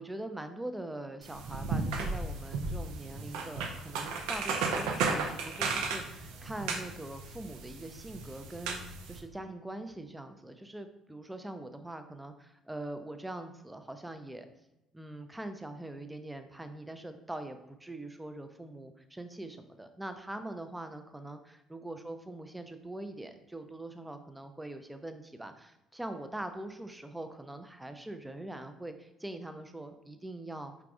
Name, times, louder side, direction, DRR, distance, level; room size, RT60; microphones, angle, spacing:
voice 1, 0.0-14.5 14.9-30.7, right 1 dB, 10° right, 8 dB, 0.5 m, -43 dB
sound 1, 1.2-9.2, right 4 dB, 65° right, 0.6 m, -35 dB
4.9 x 4.7 x 2.3 m, 0.93 s
figure-of-eight pair, 50°, 0 cm